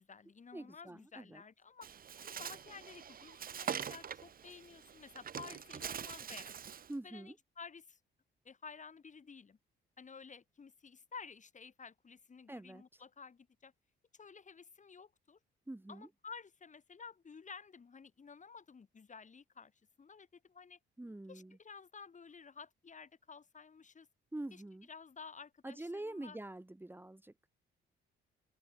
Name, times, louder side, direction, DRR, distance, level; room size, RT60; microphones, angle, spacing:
voice 1, 0.0-1.9 2.2-6.6 7.0-8.0 8.4-9.6 10.0-13.7 14.1-15.4 15.9-19.7 20.0-20.8 21.3-24.1 24.5-24.6 24.9-26.4, left 5 dB, 40° left, 7.8 m, -53 dB
voice 2, 0.5-1.4 6.9-7.4 12.5-13.0 15.7-16.1 21.0-21.6 24.3-24.9 25.6-27.5, right 1 dB, 10° right, 3.3 m, -45 dB
Bird, 1.8-6.9, right 8 dB, 45° right, 1.3 m, -44 dB
open air
cardioid pair, 90°, 20 cm